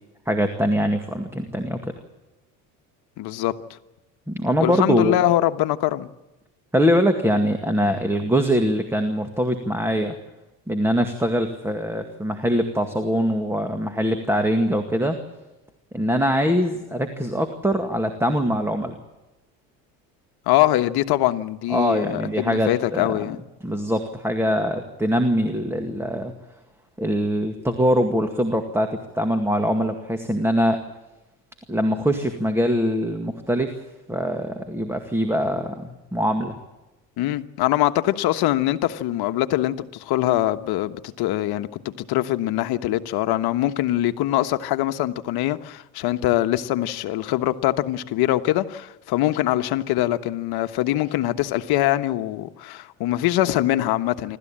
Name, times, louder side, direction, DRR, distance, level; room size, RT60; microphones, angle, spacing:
voice 1, 0.3-1.9 4.3-5.2 6.7-10.1 10.7-15.2 15.9-19.0 21.7-23.3 23.6-26.3 27.0-30.8 31.7-33.7 34.1-36.6, equal, 5° right, 2.0 m, -23 dB
voice 2, 3.2-3.8 4.6-6.1 20.5-23.4 37.2-54.4, left 14 dB, 60° left, 1.3 m, -23 dB
27.0 x 13.5 x 8.8 m
supercardioid pair, 105°, 42 cm